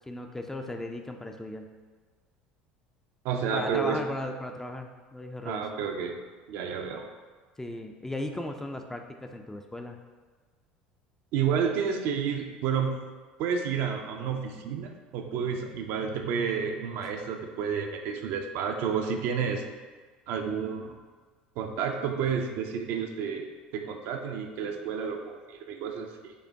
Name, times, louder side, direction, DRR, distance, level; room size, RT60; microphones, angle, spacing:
voice 1, 0.1-1.7 3.5-5.7 7.6-10.0, left 1 dB, 10° left, 4 dB, 0.4 m, -36 dB
voice 2, 3.2-4.0 5.4-6.2 6.5-7.1 11.3-13.0 13.4-19.6 20.3-21.0 21.6-23.5 23.7-26.3, right 6 dB, 55° right, 4 dB, 0.4 m, -30 dB
5.1 x 2.1 x 3.4 m, 1.4 s
figure-of-eight pair, 65°, 5 cm